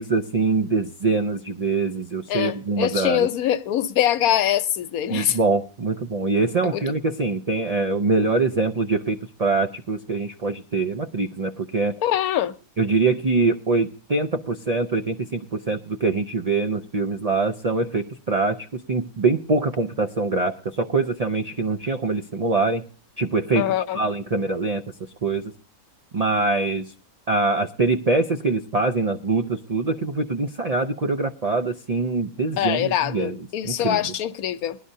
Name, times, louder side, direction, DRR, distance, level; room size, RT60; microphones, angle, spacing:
voice 1, 0.0-3.3 5.1-11.9 12.8-22.9 23.2-24.8 25.2-25.5 26.1-26.9 27.3-33.4 33.6-34.0, right 3 dB, 70° right, 0.3 m, -24 dB
voice 2, 2.3-5.4 6.6-6.8 12.0-12.5 23.6-24.0 32.6-34.8, left 11 dB, 90° left, 1.2 m, -23 dB
19.5 x 11.0 x 2.7 m
omnidirectional pair, 1.5 m